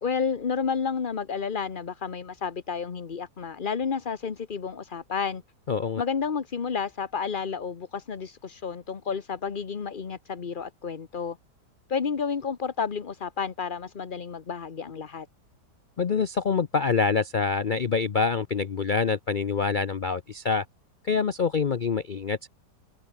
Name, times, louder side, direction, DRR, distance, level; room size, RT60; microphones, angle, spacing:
voice 1, 0.0-5.4 6.0-11.4 11.9-15.3, left 6 dB, 35° left, 1.1 m, -31 dB
voice 2, 5.7-6.0 16.0-20.6 21.0-22.5, left 5 dB, 60° left, 0.5 m, -26 dB
omnidirectional pair, 1.8 m